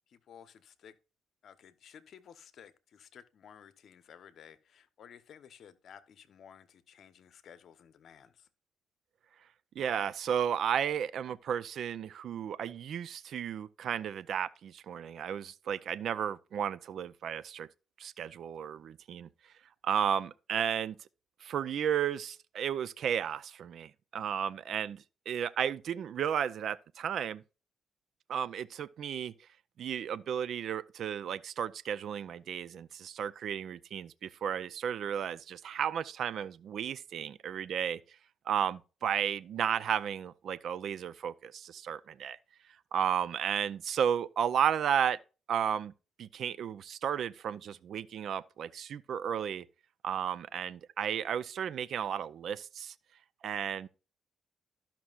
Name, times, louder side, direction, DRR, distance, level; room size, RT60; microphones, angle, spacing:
voice 1, 0.1-1.0 1.4-8.5, left 8 dB, 65° left, 0.9 m, -55 dB
voice 2, 9.8-17.7 18.0-19.3 19.8-21.0 21.4-27.4 28.3-29.3 29.8-38.0 38.5-42.4 42.9-45.2 45.5-45.9 46.2-49.6 50.0-52.9 53.4-53.9, right 8 dB, 65° right, 0.4 m, -33 dB
13.0 x 5.9 x 2.4 m
cardioid pair, 90°, 0 cm